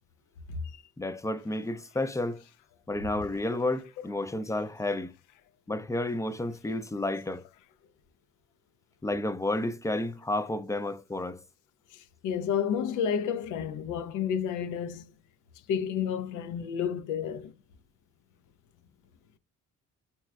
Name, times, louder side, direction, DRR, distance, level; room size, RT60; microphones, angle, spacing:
voice 1, 1.0-2.4 2.9-5.1 5.7-7.4 9.0-11.4, left 2 dB, 10° left, 0.3 m, -31 dB
voice 2, 11.9-15.1 15.7-17.5, left 8 dB, 85° left, 0.5 m, -31 dB
3.1 x 3.0 x 2.3 m
cardioid pair, 90°, 30 cm